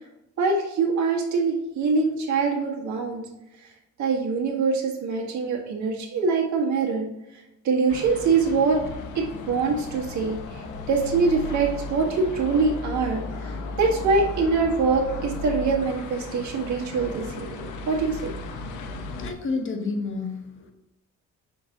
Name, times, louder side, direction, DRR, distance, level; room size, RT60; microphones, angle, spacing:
voice 1, 0.4-3.2 4.0-7.1 7.6-8.8 9.2-10.4 10.9-18.3, right 4 dB, 70° right, -1 dB, 1.6 m, -24 dB
sound 1, 7.9-19.3, left 2 dB, 85° left, 0.8 m, -35 dB
voice 2, 19.2-20.7, left 4 dB, 40° left, 4 dB, 1.1 m, -30 dB
6.7 x 3.8 x 3.6 m, 0.94 s
cardioid pair, 90°, 30 cm